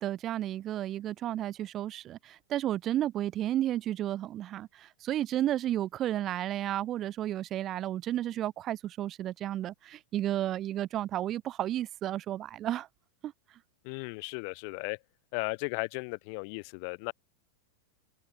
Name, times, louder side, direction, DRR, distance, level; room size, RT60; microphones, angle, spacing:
voice 1, 0.0-12.9 13.2-13.3, right 12 dB, 30° right, 1.9 m, -32 dB
voice 2, 13.8-15.0 15.3-17.1, left 37 dB, 45° left, 2.9 m, -35 dB
figure-of-eight pair, 90°, 0 cm